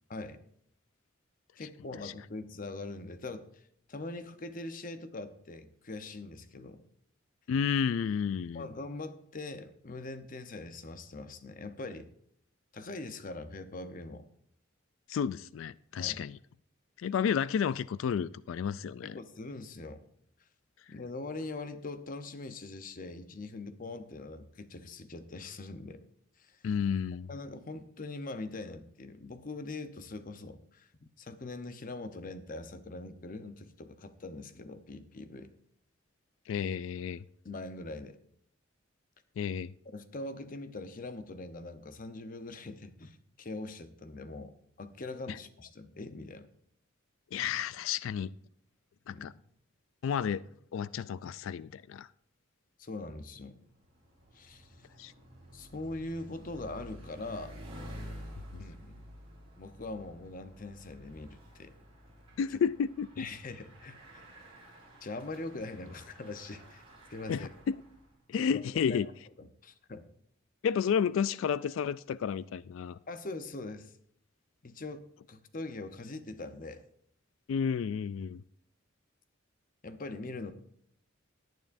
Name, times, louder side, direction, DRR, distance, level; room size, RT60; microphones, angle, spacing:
voice 1, 1.6-6.8 8.5-12.1 12.7-14.3 16.0-16.2 19.0-20.0 20.9-26.0 26.4-26.6 27.3-35.5 37.4-38.2 39.9-46.5 49.1-49.3 52.8-53.6 54.3-54.9 55.5-57.5 58.6-59.0 59.6-61.7 63.2-64.0 65.0-66.8 67.1-67.5 68.3-68.6 68.9-69.1 69.4-70.1 73.1-73.9 74.6-76.8 79.8-80.5, left 2 dB, 45° left, 0.8 m, -42 dB
voice 2, 7.5-8.7 15.1-16.4 17.0-19.2 26.6-27.3 36.5-37.2 39.4-39.7 45.3-45.4 47.3-48.3 49.1-49.3 50.0-52.1 55.0-55.1 58.5-58.6 62.4-63.3 67.3-67.8 68.3-69.1 70.6-73.0 77.5-78.4, left 7 dB, 80° left, 0.3 m, -31 dB
Bicycle, 53.5-68.2, equal, 30° right, 4.1 m, -50 dB
18.0 x 9.3 x 2.6 m
head